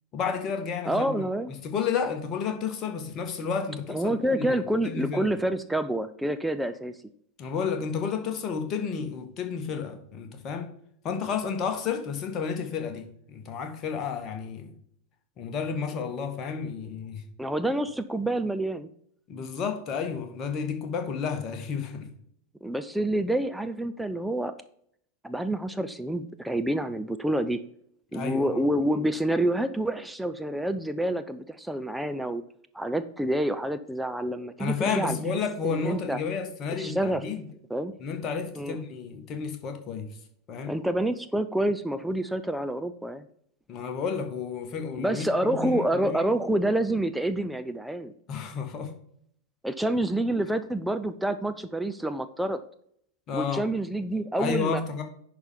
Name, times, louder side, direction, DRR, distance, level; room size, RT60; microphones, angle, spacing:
voice 1, 0.1-1.3 1.6-5.3 7.4-10.7 11.0-14.7 15.4-17.2 19.3-22.1 28.1-28.6 34.6-37.4 38.0-40.1 40.5-40.8 43.7-46.2 48.3-48.9 53.3-53.7 54.4-55.0, left 6 dB, 30° left, 1.6 m, -31 dB
voice 2, 0.9-1.5 3.9-6.9 17.4-18.9 22.6-24.5 25.2-27.6 28.1-32.4 32.7-35.2 35.6-36.2 36.8-37.2 37.7-37.9 38.6-38.8 40.7-43.2 45.0-48.1 49.6-52.6 53.3-55.0, right 1 dB, 5° right, 0.5 m, -28 dB
10.5 x 4.2 x 5.2 m
figure-of-eight pair, 90°, 0 cm